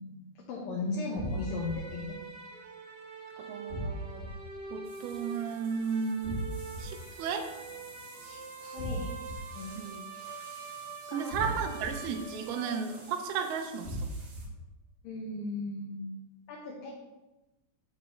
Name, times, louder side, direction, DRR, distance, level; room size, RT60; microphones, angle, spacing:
voice 1, 0.0-2.2 8.2-9.1 9.5-9.8 11.0-11.6 15.0-16.2 16.5-17.0, left 3 dB, 70° left, -3 dB, 2.4 m, -37 dB
sound 1, 1.2-1.7 3.7-4.3 6.2-6.8 8.8-9.3 11.3-11.9 13.8-14.4, equal, 40° left, 0.9 m, -35 dB
sound 2, 1.2-13.2, right 4 dB, 25° right, 1.3 m, -45 dB
voice 2, 3.4-4.2 4.7-6.4 6.8-7.5 9.8-10.0 11.1-14.1, right 6 dB, 80° right, 5 dB, 2.4 m, -34 dB
sound 3, 4.8-14.5, right 3 dB, 55° right, 2.5 m, -54 dB
7.2 x 7.1 x 3.2 m, 1.1 s
omnidirectional pair, 4.5 m